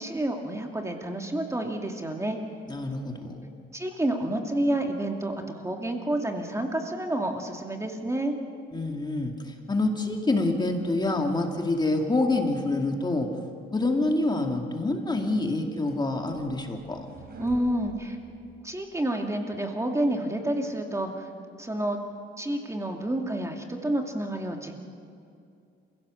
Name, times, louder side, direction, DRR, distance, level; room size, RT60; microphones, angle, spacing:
voice 1, 0.0-2.4 3.7-8.4 17.4-18.2 18.6-21.3 21.6-22.0 22.4-24.8, right 1 dB, 15° right, 3 dB, 2.4 m, -29 dB
voice 2, 2.7-3.4 8.7-13.3 13.7-17.1, left 2 dB, 20° left, 3 dB, 2.3 m, -27 dB
sound 1, 15.5-19.0, right 2 dB, 50° right, 4.1 m, -48 dB
29.0 x 16.5 x 6.5 m, 2.4 s
cardioid pair, 90°, 20 cm